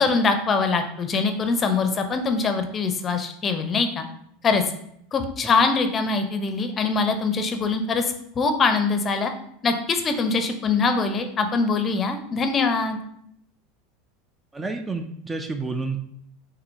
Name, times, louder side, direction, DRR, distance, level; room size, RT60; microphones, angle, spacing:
voice 1, 0.0-4.0 4.4-4.6 5.1-9.3 9.6-13.0, left 4 dB, 30° left, 7 dB, 0.6 m, -23 dB
voice 2, 14.5-16.0, right 3 dB, 15° right, 6 dB, 0.4 m, -29 dB
6.0 x 2.9 x 2.6 m, 0.71 s
hypercardioid pair, 85°, 0 cm